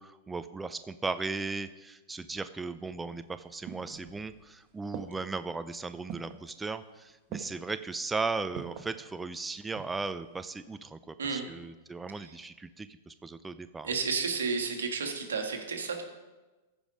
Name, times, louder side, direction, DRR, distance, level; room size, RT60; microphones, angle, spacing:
voice 1, 0.0-13.9, right 4 dB, 10° right, 12 dB, 0.4 m, -37 dB
slow-walk-on-wooden-floor, 3.1-4.5 4.9-5.5 6.1-6.5 7.3-7.7 8.6-9.0 9.5-10.1 10.4-10.5, right 8 dB, 45° right, 1.0 m, -44 dB
voice 2, 13.8-16.0, right 5 dB, 85° right, 4 dB, 1.6 m, -32 dB
14.5 x 5.1 x 5.0 m, 1.2 s
hypercardioid pair, 115°, 0 cm